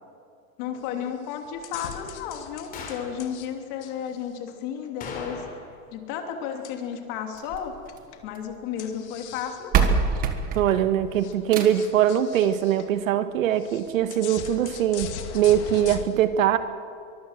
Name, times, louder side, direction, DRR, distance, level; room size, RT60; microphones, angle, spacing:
voice 1, 0.6-5.4 5.9-7.8 8.2-10.0, left 8 dB, 35° left, 4 dB, 3.0 m, -33 dB
sound 1, 0.7-1.0 1.3-3.5 3.8-5.1 6.6-7.2 7.9-8.2 8.8-9.7 10.2-10.3 10.8-10.9 11.1-12.9 13.6-16.0, left 10 dB, 55° left, 2.3 m, -41 dB
sound 2, 2.7-3.2 5.0-5.9 6.1-6.2 11.2-11.4, left 4 dB, 20° left, 3.9 m, -38 dB
sound 3, 7.3-8.6 9.4-9.5 9.7-12.0 13.3-13.4 13.9-14.0 14.3-14.4 15.0-15.1, right 6 dB, 20° right, 1.5 m, -26 dB
voice 2, 10.6-16.6, right 10 dB, 70° right, 10 dB, 1.7 m, -22 dB
23.5 x 23.0 x 7.5 m, 2.3 s
supercardioid pair, 170°, 42 cm